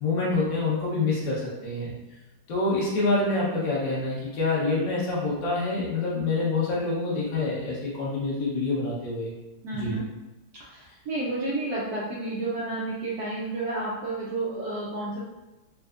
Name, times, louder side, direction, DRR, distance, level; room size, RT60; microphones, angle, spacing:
voice 1, 0.0-1.9 2.5-9.3 9.7-10.0, left 3 dB, 55° left, -7 dB, 1.1 m, -26 dB
voice 2, 9.6-10.0 10.7-15.2, right 2 dB, 75° right, -6 dB, 0.9 m, -31 dB
4.2 x 2.4 x 2.4 m, 1.1 s
omnidirectional pair, 2.3 m